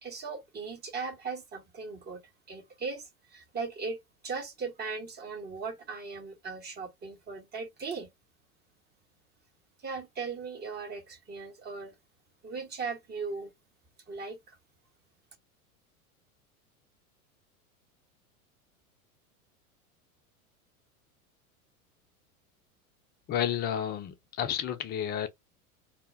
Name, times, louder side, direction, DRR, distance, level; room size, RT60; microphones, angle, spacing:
voice 1, 0.0-2.2 2.5-4.0 4.2-8.1 9.8-12.0 12.4-13.5 14.1-14.6, right 4 dB, 25° right, 0.9 m, -38 dB
voice 2, 23.3-25.3, left 10 dB, 25° left, 0.4 m, -31 dB
2.4 x 2.1 x 3.3 m
figure-of-eight pair, 85°, 43 cm